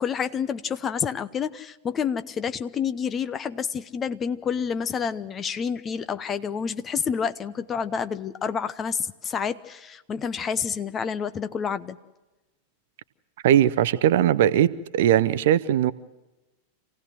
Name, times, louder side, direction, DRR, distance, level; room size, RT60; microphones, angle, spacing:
voice 1, 0.0-12.0, left 7 dB, 25° left, 0.9 m, -29 dB
voice 2, 13.4-14.7 14.9-15.9, right 11 dB, 55° right, 0.8 m, -19 dB
27.0 x 17.0 x 7.6 m
figure-of-eight pair, 90°, 0 cm